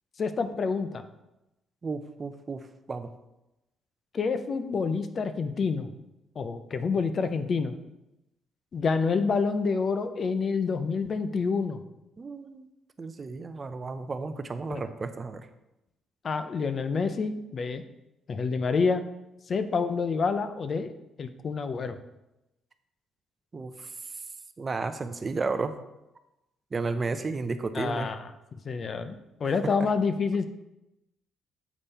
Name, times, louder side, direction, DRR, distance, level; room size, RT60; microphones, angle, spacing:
voice 1, 0.2-1.0 4.1-5.9 6.4-7.7 8.7-11.8 14.7-14.9 16.2-17.8 18.3-19.0 19.5-20.9 21.2-22.0 27.7-28.3 28.6-30.5, left 5 dB, 45° left, 10 dB, 0.6 m, -28 dB
voice 2, 1.8-2.6 2.9-3.1 12.2-12.7 13.0-15.5 23.5-23.9 24.6-25.7 26.7-28.1, right 4 dB, 35° right, 10 dB, 0.6 m, -33 dB
7.2 x 5.3 x 4.2 m, 0.93 s
cardioid pair, 90°, 0 cm